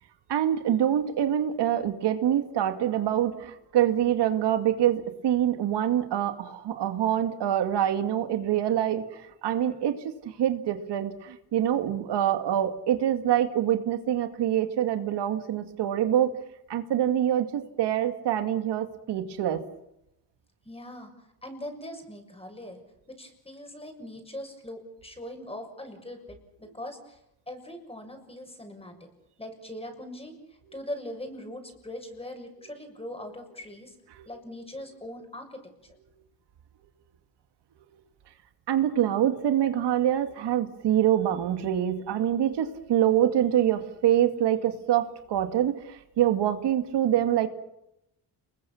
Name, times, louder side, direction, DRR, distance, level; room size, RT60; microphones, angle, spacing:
voice 1, 0.3-16.3 16.7-19.6 34.2-34.3 38.7-47.5, right 11 dB, 85° right, 8 dB, 2.3 m, -25 dB
voice 2, 20.6-21.1 21.4-22.8 23.1-27.2 27.5-29.1 29.4-30.4 30.7-34.0 34.3-36.0, left 1 dB, 15° left, 5 dB, 6.9 m, -41 dB
29.5 x 21.5 x 7.2 m, 0.82 s
cardioid pair, 105°, 40 cm